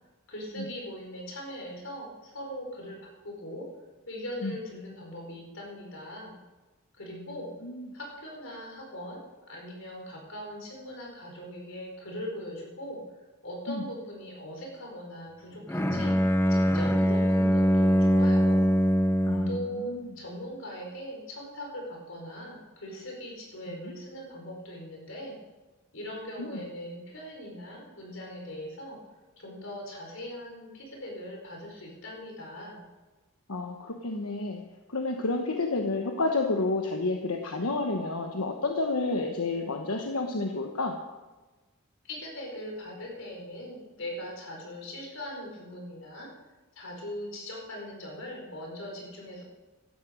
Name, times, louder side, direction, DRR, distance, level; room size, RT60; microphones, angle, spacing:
voice 1, 0.3-3.7 4.1-6.3 7.0-7.5 7.9-9.2 9.5-13.0 13.4-16.2 16.5-18.7 19.5-25.4 25.9-29.0 29.4-32.8 42.0-46.3 46.7-49.4, equal, 65° left, 0 dB, 4.8 m, -40 dB
voice 2, 7.1-7.9 13.7-13.8 19.2-20.1 23.7-23.9 26.4-26.6 33.5-34.6 34.9-41.0, left 3 dB, 85° left, 3 dB, 1.2 m, -30 dB
Bowed string instrument, 15.7-19.8, equal, 10° left, 0.8 m, -23 dB
16.0 x 12.5 x 5.2 m, 1.2 s
head